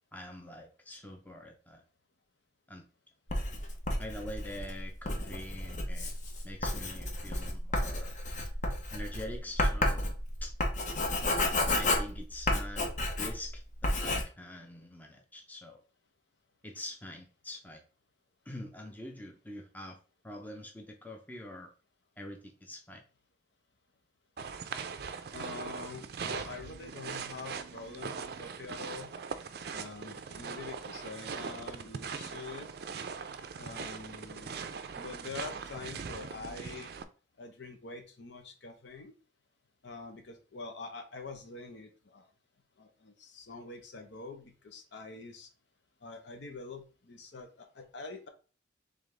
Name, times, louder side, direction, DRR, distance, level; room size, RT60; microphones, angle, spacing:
voice 1, 0.1-1.8 2.7-2.9 4.0-6.2 6.4-8.2 8.9-10.5 11.8-15.8 16.6-17.8 18.5-20.0 20.2-21.7 22.2-23.0, left 1 dB, 10° left, 2 dB, 0.6 m, -45 dB
Writing, 3.3-13.5 13.8-14.2, left 1 dB, 40° left, 0.8 m, -31 dB
sound 1, 24.4-37.0, right 5 dB, 55° right, 0.4 m, -41 dB
voice 2, 25.3-29.1 29.7-32.7 33.6-34.6 35.0-37.0 37.4-39.1 39.8-42.3 42.8-45.5 46.0-48.3, left 3 dB, 70° left, 4 dB, 0.9 m, -45 dB
3.8 x 3.5 x 3.3 m, 0.36 s
head